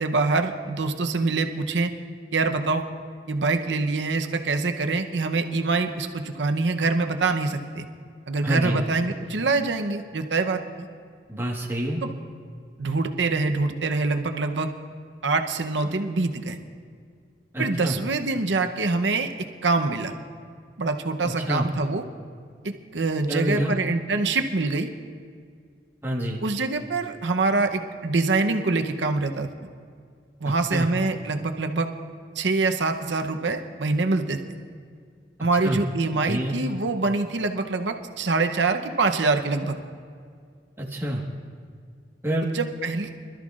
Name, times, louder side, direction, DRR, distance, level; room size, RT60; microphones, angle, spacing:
voice 1, 0.0-1.9 2.3-2.8 3.3-7.9 8.3-10.9 12.0-12.1 12.8-14.7 15.2-16.6 17.6-19.3 19.6-20.1 20.8-22.0 22.9-24.9 26.4-29.5 30.4-31.9 32.4-34.4 35.4-39.8 42.4-43.1, right 3 dB, 85° right, 6 dB, 0.8 m, -25 dB
voice 2, 8.4-8.9 11.3-12.0 17.5-18.0 21.2-21.7 23.3-23.7 26.0-26.4 30.4-30.9 35.6-35.8 36.3-36.6 40.8-41.2 42.2-42.5, equal, 15° right, -3 dB, 1.5 m, -27 dB
25.0 x 13.0 x 2.5 m, 2.1 s
head